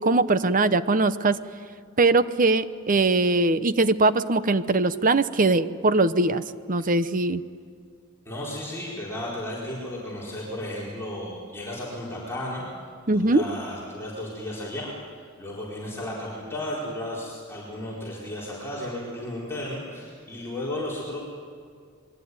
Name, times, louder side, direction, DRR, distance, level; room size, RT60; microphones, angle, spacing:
voice 1, 0.0-1.4 2.0-6.4 6.7-7.4 13.1-13.4, right 2 dB, 40° right, 13 dB, 0.9 m, -21 dB
voice 2, 8.2-12.7 13.0-21.2, left 1 dB, 10° left, -6 dB, 4.6 m, -34 dB
27.5 x 22.0 x 9.6 m, 2.1 s
head